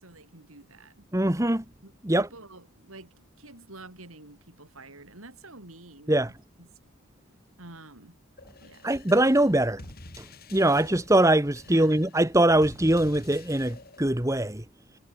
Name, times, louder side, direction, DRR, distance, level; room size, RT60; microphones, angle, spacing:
voice 1, 0.0-1.1 1.8-6.7 7.6-8.2 8.6-8.9 11.7-12.0, right 2 dB, 80° right, 6.2 m, -49 dB
voice 2, 1.1-1.6 2.0-2.3 6.1-6.3 8.8-9.8 10.2-10.3 10.5-14.6, right 1 dB, 15° right, 1.4 m, -22 dB
sound 1, 8.4-14.0, left 2 dB, 45° left, 3.7 m, -48 dB
head